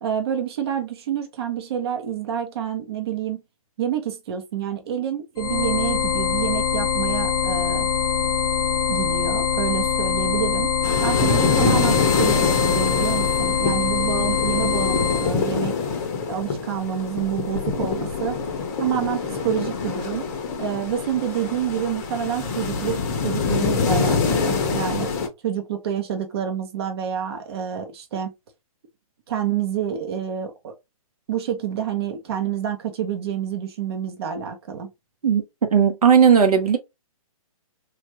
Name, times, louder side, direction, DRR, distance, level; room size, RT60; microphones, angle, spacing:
voice 1, 0.0-3.4 3.8-7.9 8.9-10.7 11.0-15.7 16.3-18.4 18.8-20.3 20.6-25.1 25.4-28.3 29.3-30.7 31.3-34.9, right 9 dB, 45° right, 0.8 m, -28 dB
sound 1, 5.4-15.3, left 7 dB, 75° left, 0.5 m, -23 dB
sound 2, 10.8-25.3, left 5 dB, 25° left, 0.7 m, -25 dB
voice 2, 35.7-36.8, right 7 dB, 85° right, 1.0 m, -16 dB
3.3 x 2.4 x 2.9 m
hypercardioid pair, 155°, 19 cm